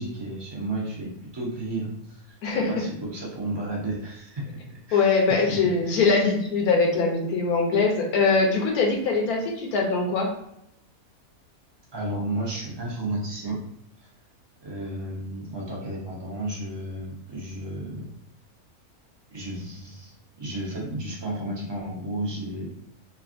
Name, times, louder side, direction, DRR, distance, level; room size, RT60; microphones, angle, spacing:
voice 1, 0.0-4.6 4.9-6.3 11.9-13.6 14.0-14.1 14.6-18.1 19.3-22.7, right 1 dB, 35° right, -4 dB, 0.4 m, -33 dB
voice 2, 4.9-10.3, left 4 dB, 85° left, 1 dB, 1.2 m, -22 dB
3.3 x 2.4 x 2.5 m, 0.75 s
omnidirectional pair, 1.5 m